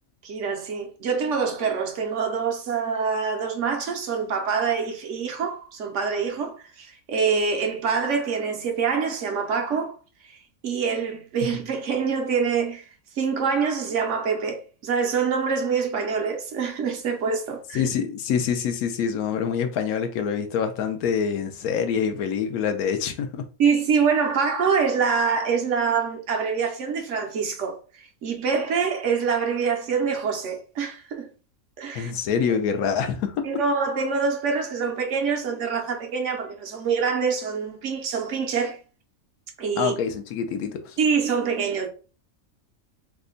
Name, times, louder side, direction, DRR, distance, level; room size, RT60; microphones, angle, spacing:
voice 1, 0.2-9.9 10.2-10.4 10.6-12.9 13.2-17.8 23.6-31.3 31.8-32.1 33.4-38.8 39.6-39.9 41.0-41.9, right 5 dB, 65° right, 0.9 m, -25 dB
voice 2, 17.7-23.4 31.9-33.4 39.8-41.0, left 7 dB, 85° left, 1.1 m, -26 dB
3.4 x 2.1 x 3.7 m
omnidirectional pair, 1.5 m